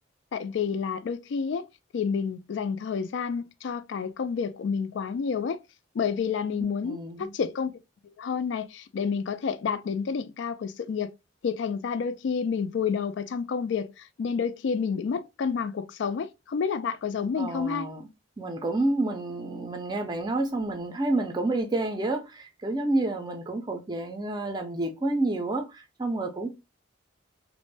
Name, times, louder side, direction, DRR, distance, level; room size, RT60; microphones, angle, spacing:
voice 1, 0.3-1.7 1.9-5.6 5.9-7.7 8.0-11.1 11.4-17.9, left 6 dB, 65° left, 0.3 m, -29 dB
voice 2, 6.8-7.3 17.4-18.1 18.4-26.5, right 2 dB, 20° right, 0.4 m, -29 dB
2.5 x 2.1 x 3.1 m
head